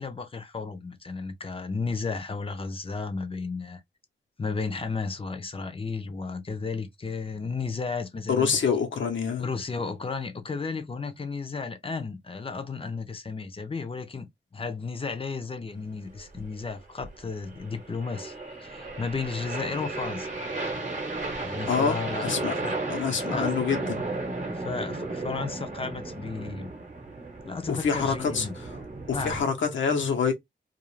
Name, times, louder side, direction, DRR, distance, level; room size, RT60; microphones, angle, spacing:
voice 1, 0.0-3.8 4.4-8.5 9.4-18.3 18.6-20.3 21.4-22.3 22.6-22.8 23.3-23.5 24.5-26.7 27.4-28.6 29.1-29.4, left 4 dB, 30° left, 0.5 m, -33 dB
voice 2, 8.3-9.5 19.7-19.8 21.7-22.5 22.9-24.0 27.7-28.8 29.1-30.3, left 6 dB, 80° left, 0.9 m, -26 dB
sound 1, 16.1-29.4, right 2 dB, 40° right, 0.9 m, -34 dB
2.4 x 2.4 x 3.1 m
wide cardioid pair, 110°, 19 cm